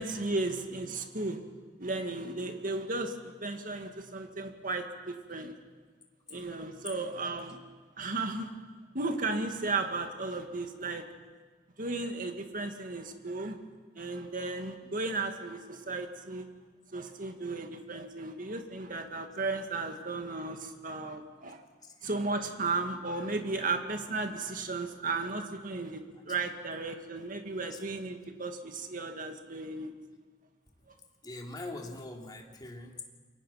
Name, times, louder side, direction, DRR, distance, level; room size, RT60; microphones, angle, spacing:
voice 1, 0.0-1.4 1.8-5.5 6.3-7.6 8.0-8.5 8.9-11.0 11.8-13.6 14.0-16.5 16.9-21.6 22.0-29.9, right 3 dB, 50° right, 5 dB, 2.2 m, -35 dB
voice 2, 31.2-33.0, left 2 dB, 25° left, 1 dB, 3.0 m, -42 dB
28.0 x 23.5 x 5.9 m, 1.4 s
head